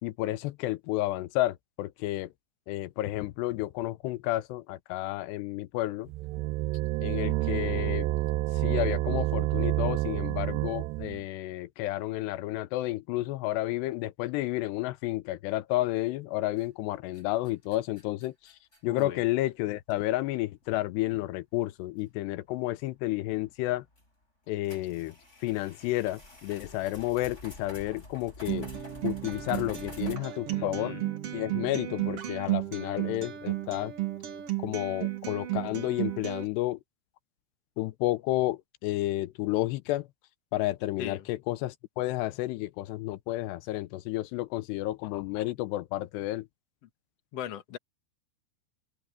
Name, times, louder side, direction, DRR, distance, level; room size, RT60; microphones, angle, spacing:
voice 1, 0.0-2.3 2.7-6.1 7.0-8.1 8.5-18.5 18.8-23.9 24.5-25.2 25.4-28.7 29.0-31.0 31.3-33.9 34.6-36.8 37.8-40.1 40.5-46.5, left 17 dB, 85° left, 2.9 m, -31 dB
sound 1, 6.1-11.2, right 17 dB, 85° right, 2.8 m, -29 dB
sound 2, 16.6-16.9 17.1-19.1 19.9-20.0 20.6-20.7 22.0-22.1 23.9-24.1 24.6-30.2, left 1 dB, 15° left, 6.8 m, -48 dB
voice 2, 18.9-19.2 30.5-31.1 41.0-41.2 47.3-47.8, left 9 dB, 50° left, 2.3 m, -39 dB
Acoustic guitar, 28.5-36.5, right 15 dB, 55° right, 1.7 m, -33 dB
open air
omnidirectional pair, 4.8 m